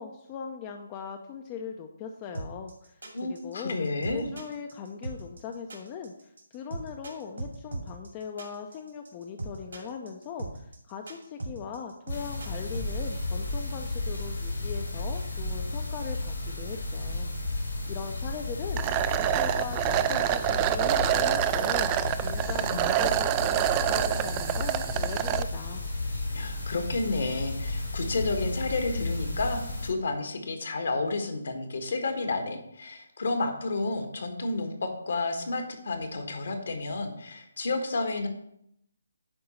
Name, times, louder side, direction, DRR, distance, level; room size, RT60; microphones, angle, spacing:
voice 1, 0.0-3.8 4.1-21.9 22.2-25.8, left 6 dB, 25° left, 4 dB, 0.6 m, -40 dB
sound 1, 2.3-12.9, right 2 dB, 70° right, 2.3 m, -38 dB
voice 2, 3.1-4.3 26.3-34.7 35.1-38.3, left 3 dB, 60° left, 5 dB, 1.5 m, -31 dB
sound 2, 12.1-29.9, left 2 dB, 75° left, 2.9 m, -33 dB
sound 3, 18.8-25.4, right 12 dB, 25° right, 0.4 m, -26 dB
9.7 x 3.7 x 5.7 m, 0.75 s
figure-of-eight pair, 145°, 0 cm